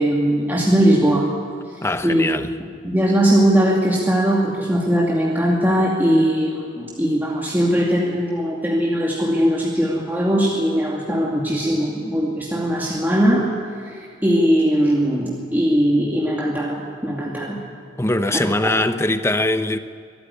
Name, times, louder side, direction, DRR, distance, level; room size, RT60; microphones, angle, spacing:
voice 1, 0.0-1.3 2.0-2.2 2.8-13.5 13.9-17.6 18.4-18.7, equal, 10° right, 2.4 m, -19 dB
voice 2, 1.8-2.5 18.0-19.8, left 2 dB, 15° left, 0.9 m, -21 dB
23.0 x 14.0 x 9.9 m
head